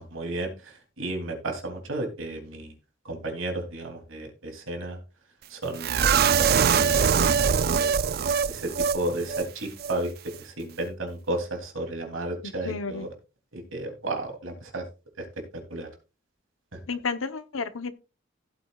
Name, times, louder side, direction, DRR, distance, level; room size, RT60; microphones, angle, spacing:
voice 1, 0.0-2.7 3.0-5.0 5.5-7.2 7.6-7.9 8.5-10.1 10.4-13.1 13.5-14.9 15.2-15.3 15.5-15.9 16.7-16.8, right 2 dB, 85° right, 3.0 m, -33 dB
sound 1, 5.8-9.0 9.3-9.4 9.8-9.9, right 6 dB, 50° right, 0.4 m, -22 dB
voice 2, 12.4-13.1 16.9-17.9, left 4 dB, 90° left, 0.9 m, -32 dB
16.0 x 8.3 x 2.4 m
head